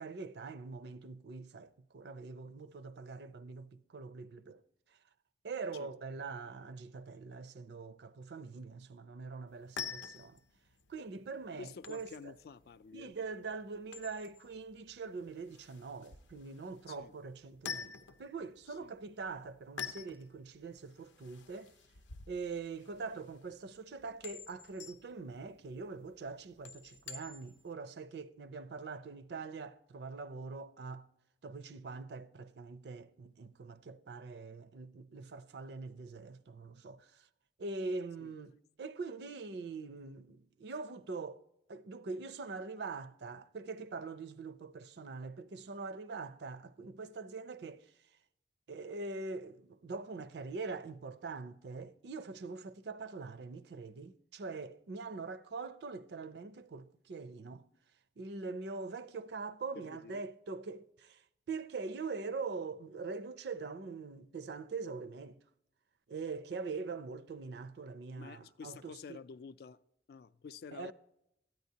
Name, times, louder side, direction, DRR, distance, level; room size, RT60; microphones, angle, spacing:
voice 1, 0.0-4.6 5.4-10.4 10.9-12.3 12.9-17.9 18.2-21.7 22.3-31.1 31.4-37.2 37.6-41.4 41.7-47.9 48.7-57.6 58.2-61.2 61.5-65.4 66.1-69.2 70.7-70.9, right 4 dB, 65° right, 0.4 m, -43 dB
sound 1, 9.5-27.7, left 6 dB, 90° left, 0.6 m, -49 dB
voice 2, 11.6-13.2 16.9-17.1 18.8-18.9 38.2-38.3 59.7-60.2 68.2-69.8 70.1-70.9, left 5 dB, 55° left, 0.3 m, -50 dB
13.5 x 9.3 x 2.8 m
head